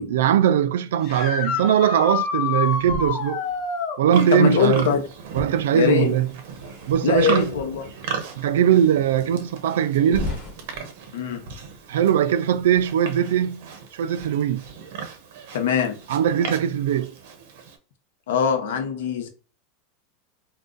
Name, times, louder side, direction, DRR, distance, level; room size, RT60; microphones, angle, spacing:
voice 1, 0.1-3.5 4.0-4.9 5.3-6.3 6.9-7.5 8.4-10.3 11.9-14.6 16.1-17.1, right 9 dB, 90° right, 0.3 m, -20 dB
sound 1, 1.0-4.0 7.3-7.4 9.5-9.6 15.8-15.9, left 6 dB, 40° left, 0.6 m, -27 dB
sound 2, 2.6-4.0 5.8-7.3 8.0-8.1 8.8-8.9 10.0-10.8, left 2 dB, 20° left, 1.1 m, -36 dB
Livestock farm animals working animals, 4.1-17.8, right 6 dB, 55° right, 0.7 m, -36 dB
voice 2, 4.3-5.1 5.7-6.2 7.0-7.8 11.1-11.5 15.5-16.0 18.3-19.3, left 7 dB, 75° left, 0.7 m, -22 dB
2.5 x 2.3 x 3.7 m
supercardioid pair, 175°, 0 cm